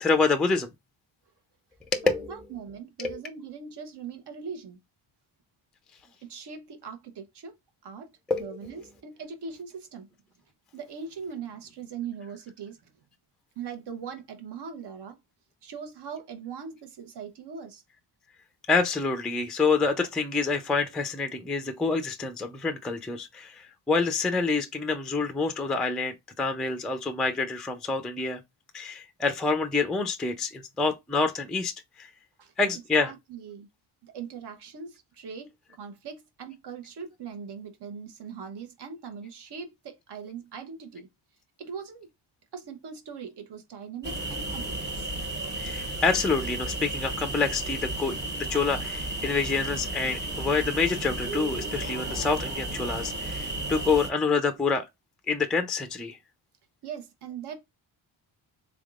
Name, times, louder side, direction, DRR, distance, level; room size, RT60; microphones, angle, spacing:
voice 1, 0.0-0.7 1.9-2.4 3.0-3.2 8.3-8.7 18.7-28.4 28.7-31.7 32.0-32.1 32.6-33.1 45.6-54.9 55.3-56.2, left 4 dB, ahead, 0.4 m, -27 dB
voice 2, 2.0-4.8 6.2-7.5 7.8-8.1 8.4-10.1 10.7-12.9 13.6-15.2 15.6-17.8 32.4-32.5 33.0-33.7 34.0-41.1 41.6-42.1 42.5-45.1 56.8-57.6, right 6 dB, 55° right, 1.0 m, -40 dB
sound 1, 44.0-54.1, right 2 dB, 20° right, 0.9 m, -33 dB
3.7 x 3.5 x 2.4 m
cardioid pair, 130°, 49 cm